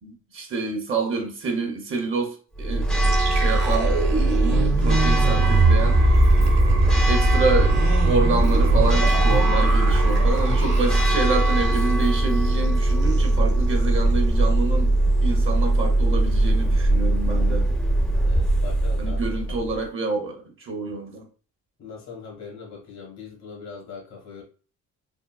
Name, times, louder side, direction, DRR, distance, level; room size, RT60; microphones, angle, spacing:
voice 1, 0.0-6.3 7.0-7.8 8.0-17.7 19.0-21.3, right 3 dB, 45° right, 0.8 m, -28 dB
Church bell, 2.6-19.8, right 2 dB, ahead, 0.5 m, -20 dB
sound 1, 3.0-12.1 12.4-12.5 12.9-13.3, right 2 dB, 65° right, 1.1 m, -24 dB
sound 2, 5.4-11.6, right 4 dB, 85° right, 1.0 m, -36 dB
voice 2, 18.2-19.2 19.5-19.6 21.8-24.4, left 5 dB, 85° left, 1.4 m, -40 dB
3.7 x 2.0 x 2.3 m
cardioid pair, 105°, 31 cm